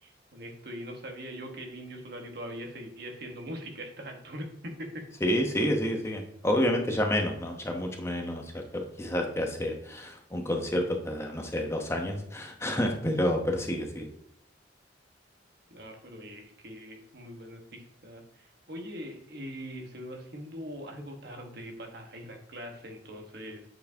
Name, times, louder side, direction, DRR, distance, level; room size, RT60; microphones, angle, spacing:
voice 1, 0.0-5.1 15.7-23.7, equal, 60° right, 3 dB, 1.2 m, -42 dB
voice 2, 5.2-14.1, equal, 15° left, 2 dB, 0.7 m, -29 dB
7.7 x 4.6 x 2.7 m, 0.71 s
head